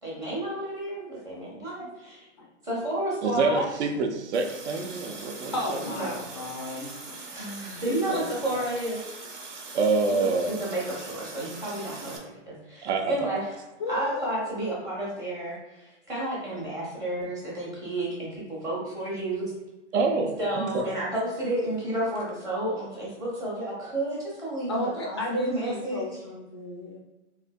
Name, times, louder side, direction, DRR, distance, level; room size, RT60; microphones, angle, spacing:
voice 1, 0.0-2.2 2.6-3.7 5.9-6.1 6.6-6.8 7.3-9.0 10.5-12.2 12.5-13.5 13.9-19.5 20.4-26.0, right 1 dB, 10° right, -6 dB, 0.7 m, -31 dB
voice 2, 3.2-5.8 9.7-10.5 12.8-13.3 19.9-20.8, right 3 dB, 65° right, 4 dB, 0.7 m, -26 dB
Water tap faucet, 4.3-12.2, right 3 dB, 80° right, 1.1 m, -42 dB
voice 3, 5.5-7.2 7.9-8.2 13.8-14.2 19.1-19.2 24.7-27.0, left 2 dB, 25° left, -1 dB, 0.3 m, -33 dB
3.6 x 3.1 x 2.2 m, 1.1 s
hypercardioid pair, 150°, 37 cm